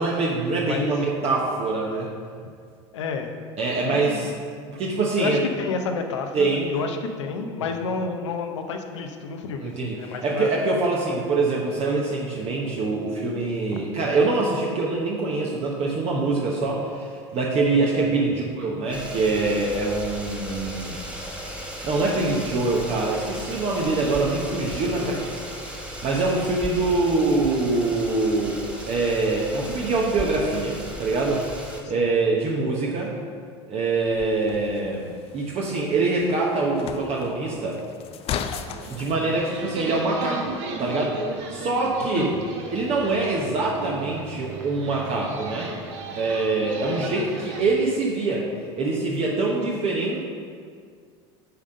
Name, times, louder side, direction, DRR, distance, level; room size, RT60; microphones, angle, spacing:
voice 1, 0.0-2.1 3.6-4.3 4.7-5.4 6.3-6.7 9.6-21.0 21.8-25.3 26.0-28.6 28.9-31.4 31.9-33.1 33.7-37.8 38.9-40.5 40.8-41.2 41.5-42.3 42.7-45.7 46.1-48.5 48.8-50.2, right 3 dB, 45° right, -2 dB, 1.1 m, -24 dB
voice 2, 0.6-0.9 2.9-3.4 3.8-4.2 5.2-10.5 18.2-18.3 24.7-25.3 32.0-32.1 42.2-42.3 46.8-47.1, left 5 dB, 80° left, 5 dB, 0.8 m, -30 dB
sound 1, 18.9-31.8, right 1 dB, 5° right, 1.3 m, -36 dB
sound 2, 34.1-39.2, left 8 dB, 40° left, 0.5 m, -36 dB
sound 3, 38.3-47.6, right 3 dB, 75° right, 1.1 m, -36 dB
10.0 x 3.7 x 5.3 m, 2.1 s
hypercardioid pair, 85°, 15 cm